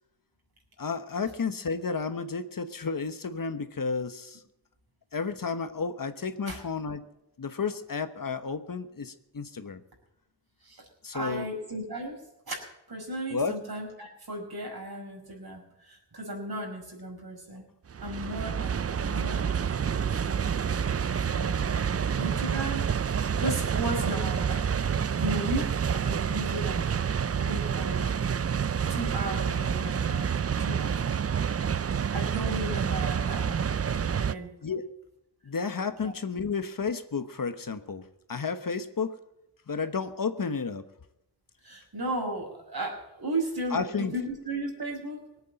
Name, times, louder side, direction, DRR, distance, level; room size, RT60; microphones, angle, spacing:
voice 1, 0.8-4.4 5.1-7.0 7.4-9.8 11.0-11.5 13.3-13.6 34.6-34.9 35.4-39.2 39.7-40.8 43.7-44.1, left 5 dB, 50° left, 10 dB, 1.1 m, -32 dB
voice 2, 11.1-12.2 12.5-12.6 12.9-17.6 18.0-20.4 21.3-21.9 22.1-22.9 23.3-27.0 27.4-28.1 28.9-30.3 30.6-31.2 32.1-33.6 34.1-34.5 36.0-36.1 41.6-45.2, right 1 dB, 60° right, 1 dB, 5.4 m, -35 dB
sound 1, 17.9-34.3, right 7 dB, 35° right, 0.5 m, -28 dB
19.5 x 8.5 x 7.6 m, 0.87 s
cardioid pair, 55°, 41 cm